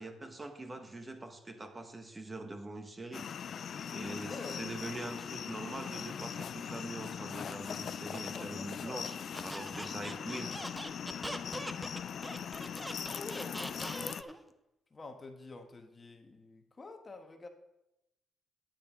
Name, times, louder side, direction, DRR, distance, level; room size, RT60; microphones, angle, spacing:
voice 1, 0.0-3.3 3.9-10.6, right 2 dB, 20° right, 6 dB, 1.4 m, -43 dB
sound 1, 3.1-14.2, left 7 dB, 55° left, 0.4 m, -40 dB
voice 2, 4.2-4.6 8.3-9.0 13.0-14.3 14.9-17.5, left 3 dB, 30° left, 5 dB, 1.3 m, -47 dB
Squeak, 9.3-14.4, equal, 5° right, 0.8 m, -42 dB
11.5 x 10.0 x 3.7 m, 0.91 s
cardioid pair, 90°, 0 cm